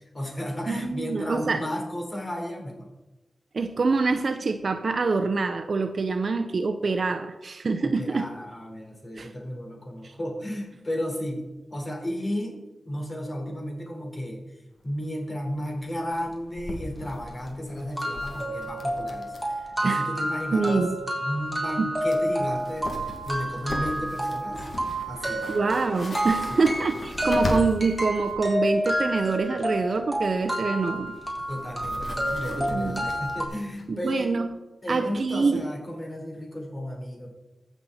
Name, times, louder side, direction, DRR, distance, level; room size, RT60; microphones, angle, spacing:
voice 1, 0.1-2.9 7.8-12.6 12.9-14.4 14.8-20.9 21.2-24.6 25.0-25.7 26.5-26.7 31.5-34.3 34.8-37.3, equal, 35° left, 0 dB, 4.2 m, -33 dB
voice 2, 0.7-1.6 3.5-8.3 9.2-9.3 10.0-10.1 19.8-20.1 20.5-21.0 21.8-21.9 25.5-31.1 32.6-33.1 33.9-34.5 34.9-35.6, right 4 dB, 65° right, 7 dB, 0.7 m, -25 dB
sound 1, 14.8-14.9 15.1-15.2 15.5-15.7 16.1-19.6 19.9-20.0 21.7-21.8 22.0-28.4 30.2-33.9, left 1 dB, 60° left, 2.2 m, -38 dB
sound 2, 17.0-17.1 17.5-17.6 18.0-33.5, equal, ahead, 3.8 m, -29 dB
14.5 x 7.3 x 4.3 m, 1.0 s
cardioid pair, 55°, 0 cm